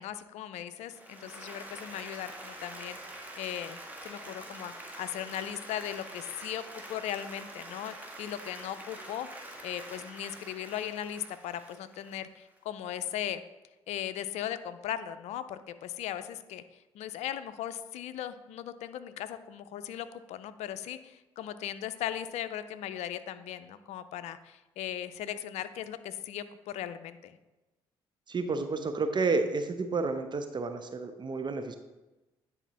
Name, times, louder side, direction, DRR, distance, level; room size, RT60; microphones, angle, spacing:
voice 1, 0.0-3.0 3.4-9.3 9.6-13.4 13.9-16.6 16.9-27.4, left 11 dB, 65° left, 12 dB, 0.5 m, -38 dB
Applause, 0.9-12.6, right 1 dB, 15° right, 1.7 m, -46 dB
voice 2, 28.3-31.8, right 4 dB, 40° right, 8 dB, 0.8 m, -30 dB
9.9 x 4.2 x 4.1 m, 1.1 s
hypercardioid pair, 50°, 12 cm